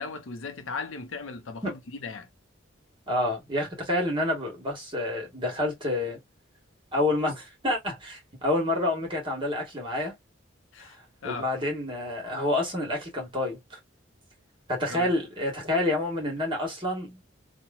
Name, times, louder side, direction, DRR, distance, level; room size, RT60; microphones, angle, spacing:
voice 1, 0.0-2.3 10.7-11.0 11.2-11.5 14.9-15.1, left 4 dB, 75° left, 0.6 m, -37 dB
voice 2, 3.1-6.2 6.9-10.1 10.8-10.9 11.2-13.8 14.7-17.2, left 1 dB, 25° right, 1.3 m, -28 dB
2.9 x 2.1 x 2.4 m
head